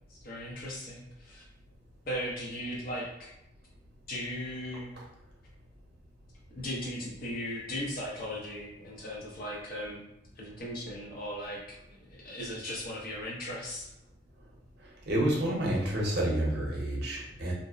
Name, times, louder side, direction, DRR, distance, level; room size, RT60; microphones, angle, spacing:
voice 1, 0.1-1.4 2.1-3.3 4.1-4.9 6.5-10.0 10.4-11.6 11.9-13.9, equal, 50° left, -4 dB, 0.7 m, -37 dB
voice 2, 15.1-17.5, right 1 dB, 60° right, -3 dB, 0.7 m, -29 dB
2.6 x 2.0 x 2.4 m, 0.83 s
head